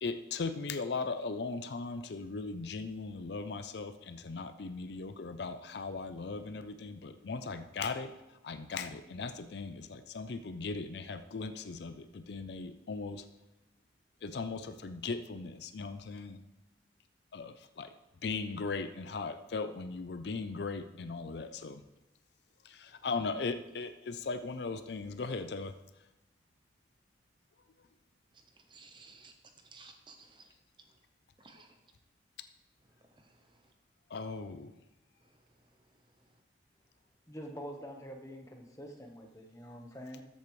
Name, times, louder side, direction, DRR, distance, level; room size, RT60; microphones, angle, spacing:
voice 1, 0.0-8.1 8.4-13.2 14.2-16.4 17.3-17.9 18.2-21.8 22.6-25.7 34.1-34.7, left 4 dB, 65° left, 10 dB, 0.5 m, -38 dB
voice 2, 28.7-29.3 29.6-30.5 31.4-31.8 33.2-33.5, right 4 dB, 25° right, 5 dB, 0.9 m, -56 dB
voice 3, 37.3-40.2, equal, 15° left, 2 dB, 1.2 m, -46 dB
13.5 x 8.2 x 3.2 m, 0.96 s
head